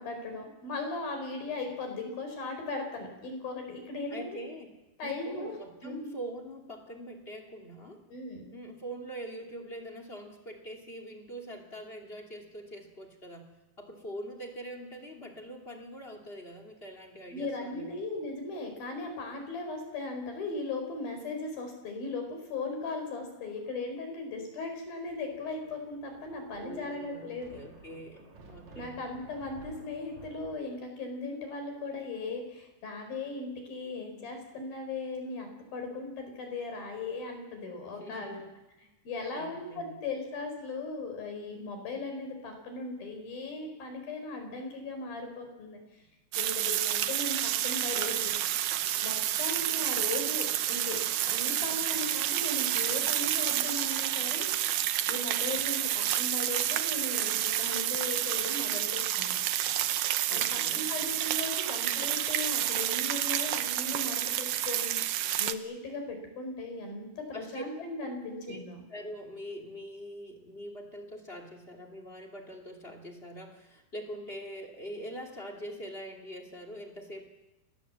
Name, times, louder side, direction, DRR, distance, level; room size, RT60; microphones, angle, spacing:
voice 1, 0.0-4.4 5.0-5.6 5.8-6.1 8.1-8.5 17.3-27.6 28.7-38.4 39.0-45.8 46.4-48.3 49.0-51.0 51.3-54.5 55.1-59.4 60.3-64.9 65.4-68.8, left 3 dB, 60° left, 5 dB, 6.3 m, -38 dB
voice 2, 4.1-4.7 5.0-8.0 8.5-13.5 13.8-18.0 26.5-28.9 37.8-38.4 39.3-40.0 60.3-60.9 67.3-67.6 68.4-68.6 68.9-77.2, right 1 dB, 20° left, 6 dB, 1.8 m, -43 dB
Thunder, 25.0-30.6, right 3 dB, 45° right, 4.1 m, -53 dB
sound 1, 46.3-65.5, right 12 dB, 80° right, 1.8 m, -29 dB
28.5 x 19.5 x 7.5 m, 1.0 s
omnidirectional pair, 4.8 m